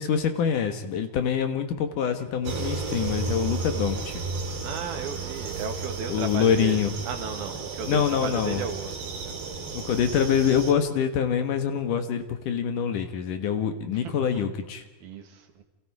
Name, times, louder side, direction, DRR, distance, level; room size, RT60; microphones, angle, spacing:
voice 1, 0.0-4.2 6.1-6.9 7.9-8.6 9.7-14.8, left 7 dB, 65° left, 8 dB, 2.7 m, -25 dB
sound 1, 2.4-10.7, right 4 dB, 90° right, 5.4 m, -33 dB
voice 2, 4.6-9.8 14.0-14.5 15.0-15.6, right 6 dB, 75° right, 6 dB, 3.8 m, -35 dB
30.0 x 27.0 x 4.8 m, 0.99 s
omnidirectional pair, 4.4 m